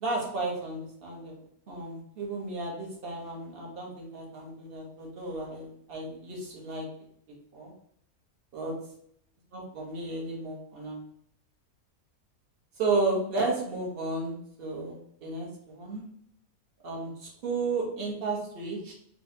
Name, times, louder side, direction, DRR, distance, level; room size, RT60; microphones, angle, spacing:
voice 1, 0.0-1.4 1.7-6.8 7.5-7.7 8.5-8.7 9.5-11.0 12.8-16.0 16.8-18.9, right 3 dB, 45° right, -2 dB, 1.0 m, -33 dB
4.2 x 2.3 x 2.7 m, 0.68 s
omnidirectional pair, 1.5 m